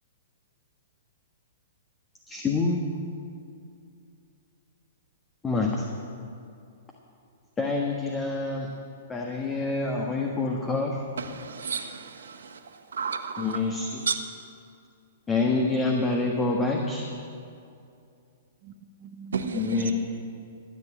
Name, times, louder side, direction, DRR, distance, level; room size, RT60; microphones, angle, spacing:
voice 1, 2.3-2.8 5.4-5.9 7.6-8.7 9.1-11.0 13.4-14.1 15.3-17.1 19.5-19.9, left 3 dB, 15° left, 1.5 m, -26 dB
voice 2, 11.2-14.2 19.3-19.9, right 5 dB, 75° right, 1.3 m, -33 dB
voice 3, 18.6-19.9, right 3 dB, 40° right, 1.2 m, -43 dB
13.5 x 9.1 x 8.7 m
hypercardioid pair, 115°, 0 cm